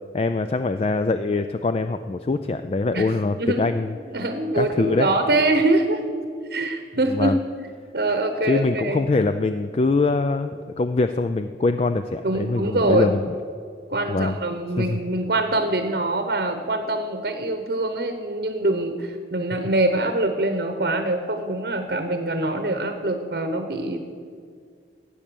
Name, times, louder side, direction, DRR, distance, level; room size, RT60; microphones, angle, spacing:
voice 1, 0.1-4.0 4.6-5.1 7.1-7.4 8.5-13.3 14.1-14.4 14.8-15.0, left 3 dB, 35° left, 9 dB, 0.3 m, -23 dB
voice 2, 3.4-6.0 6.4-7.4 7.9-9.1 12.2-13.1 13.9-24.0, right 2 dB, 55° right, 7 dB, 0.9 m, -24 dB
13.5 x 8.6 x 6.9 m, 2.2 s
head